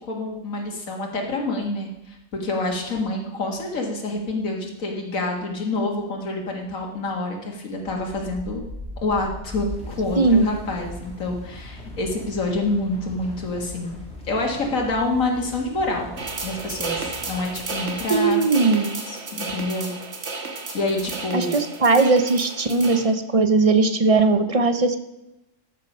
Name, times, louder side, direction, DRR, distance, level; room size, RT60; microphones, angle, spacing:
voice 1, 0.0-8.6 9.0-14.0 14.3-16.1 16.4-18.4 19.1-20.0 20.7-21.5, left 2 dB, 85° left, 0 dB, 2.2 m, -27 dB
sound 1, 7.8-18.6, left 1 dB, 5° left, 2.9 m, -40 dB
voice 2, 10.2-10.5 18.1-18.9 21.3-25.0, right 3 dB, 35° right, 9 dB, 0.7 m, -19 dB
sound 2, 16.2-23.0, right 3 dB, 60° right, 1.7 m, -33 dB
13.5 x 6.7 x 5.5 m, 0.93 s
omnidirectional pair, 1.4 m